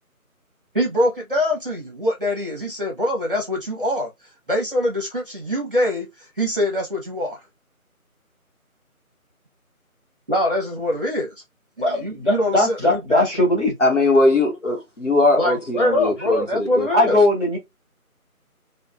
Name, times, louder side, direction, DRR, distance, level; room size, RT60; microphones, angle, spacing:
voice 1, 0.7-4.1 4.5-6.1 6.4-7.4 10.3-11.3 11.8-13.3 15.4-17.2, left 1 dB, 40° right, 0.9 m, -23 dB
voice 2, 11.8-13.7 16.9-17.6, left 1 dB, 20° right, 1.4 m, -19 dB
voice 3, 13.8-16.9, left 2 dB, 55° left, 1.2 m, -20 dB
3.4 x 2.4 x 2.3 m
figure-of-eight pair, 165°, 44 cm